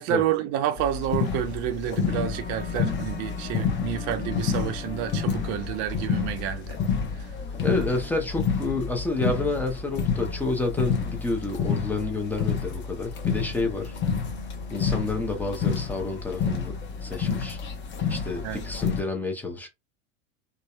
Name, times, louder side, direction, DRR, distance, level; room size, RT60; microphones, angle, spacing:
voice 1, 0.0-6.8 7.2-7.3 18.4-18.7, right 10 dB, 45° right, 0.5 m, -29 dB
sound 1, 0.8-19.0, left 6 dB, 30° left, 0.8 m, -29 dB
voice 2, 7.6-14.0 14.7-16.7 17.0-17.6 18.1-19.7, left 3 dB, 5° left, 0.5 m, -29 dB
2.7 x 2.1 x 2.3 m
hypercardioid pair, 115°, 39 cm